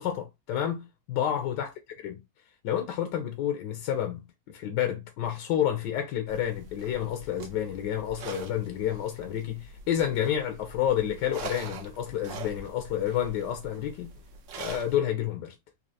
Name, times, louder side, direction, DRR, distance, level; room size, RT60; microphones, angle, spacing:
voice 1, 0.0-0.8 1.1-1.7 2.0-2.2 2.6-14.1 14.6-15.5, left 10 dB, 75° left, 1.2 m, -29 dB
sound 1, 6.3-15.0, right 4 dB, 70° right, 0.7 m, -44 dB
4.1 x 2.8 x 2.7 m
omnidirectional pair, 2.1 m